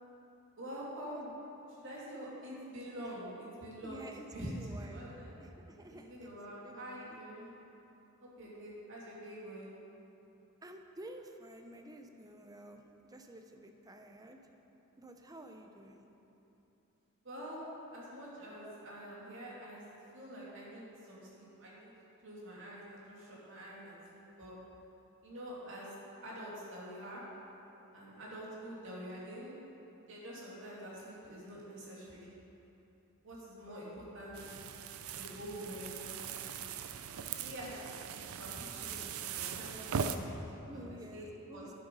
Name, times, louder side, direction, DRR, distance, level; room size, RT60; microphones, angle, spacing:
voice 1, 0.6-1.3 1.7-4.0 4.3-5.3 5.9-7.5 8.2-9.7 17.2-17.6 17.9-19.8 20.1-21.9 22.2-24.6 25.2-25.9 26.2-27.2 27.9-29.5 30.1-32.3 33.2-34.6 35.1-36.7 37.4-37.8 38.4-39.8 40.0-40.4 40.7-41.6, equal, 65° right, -6 dB, 2.8 m, -46 dB
voice 2, 3.8-5.1 5.4-6.3 6.6-7.2 10.6-14.4 15.0-16.0 40.7-41.7, right 1 dB, 20° right, 4 dB, 0.7 m, -51 dB
sound 1, 34.3-40.2, right 7 dB, 80° right, 0.5 m, -40 dB
11.0 x 7.9 x 5.4 m, 3.0 s
head